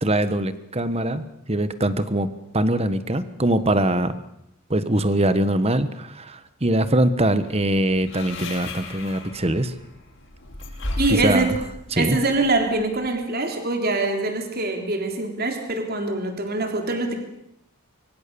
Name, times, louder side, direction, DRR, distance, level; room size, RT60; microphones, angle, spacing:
voice 1, 0.0-4.2 4.7-9.7 11.1-11.5 11.9-12.2, right 1 dB, 25° right, 12 dB, 1.3 m, -22 dB
Old metal squeaking, 7.4-13.1, left 2 dB, 55° left, 6.7 m, -36 dB
voice 2, 11.0-11.5 12.0-17.1, right 2 dB, 45° right, 4 dB, 3.5 m, -24 dB
25.0 x 24.0 x 7.0 m, 0.78 s
head